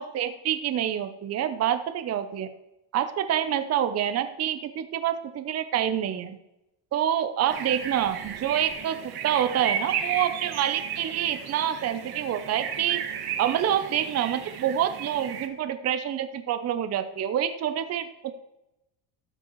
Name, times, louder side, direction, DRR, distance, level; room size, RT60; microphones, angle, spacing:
voice 1, 0.0-2.5 2.9-6.4 6.9-9.0 9.2-13.0 13.4-18.3, right 10 dB, 35° right, 10 dB, 0.7 m, -27 dB
sound 1, 7.5-15.5, right 7 dB, 50° right, 1.4 m, -34 dB
13.5 x 7.6 x 3.1 m, 0.91 s
cardioid pair, 115°, 47 cm